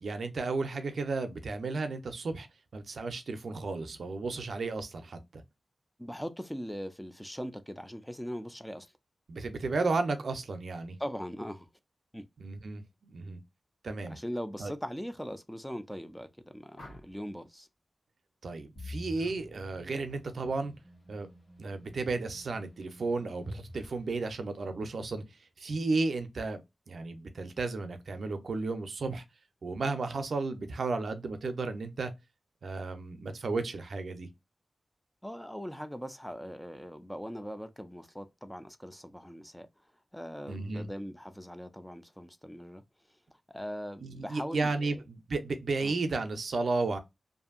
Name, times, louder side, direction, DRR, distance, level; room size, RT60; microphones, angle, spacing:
voice 1, 0.0-2.5 2.7-5.4 9.3-11.0 12.4-12.8 13.1-13.4 13.8-14.2 14.6-14.7 18.4-20.7 21.1-21.3 21.6-25.2 25.6-26.6 26.9-29.2 29.6-32.1 32.6-34.3 40.5-40.9 44.0-47.0, right 3 dB, 75° right, 0.5 m, -33 dB
voice 2, 6.0-8.9 11.0-11.7 12.1-12.2 14.1-17.7 35.2-39.7 40.1-42.8 43.5-45.0 45.8-45.9, equal, 5° left, 0.3 m, -40 dB
sound 1, 16.7-17.4 19.1-19.4 19.8-20.2, left 1 dB, 85° left, 0.9 m, -52 dB
sound 2, 18.8-24.7, left 1 dB, 60° left, 1.1 m, -49 dB
2.6 x 2.5 x 2.4 m
wide cardioid pair, 120°, 0 cm